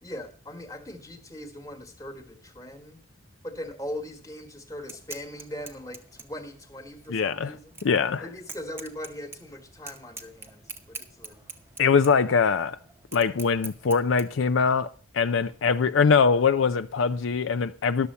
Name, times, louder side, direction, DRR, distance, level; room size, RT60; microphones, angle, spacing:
voice 1, 0.0-3.0 3.4-7.8 8.2-11.4, left 1 dB, 15° left, 1.4 m, -40 dB
sound 1, 4.7-14.2, right 4 dB, 10° right, 0.8 m, -44 dB
voice 2, 7.1-7.6 7.8-8.3 11.8-12.8 13.1-18.1, left 5 dB, 70° left, 0.5 m, -23 dB
11.5 x 7.0 x 5.4 m
head